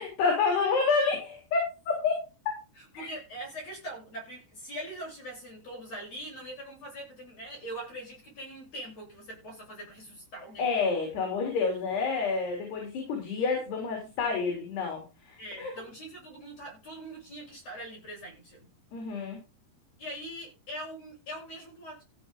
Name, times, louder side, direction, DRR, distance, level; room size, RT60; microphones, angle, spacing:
voice 1, 0.0-2.3 2.9-3.1 10.6-15.7 18.9-19.4, left 4 dB, 60° left, 1 dB, 5.5 m, -29 dB
voice 2, 2.8-10.7 15.4-18.7 20.0-22.0, right 1 dB, 30° left, -1 dB, 8.8 m, -42 dB
16.0 x 7.8 x 3.8 m, 0.28 s
omnidirectional pair, 5.5 m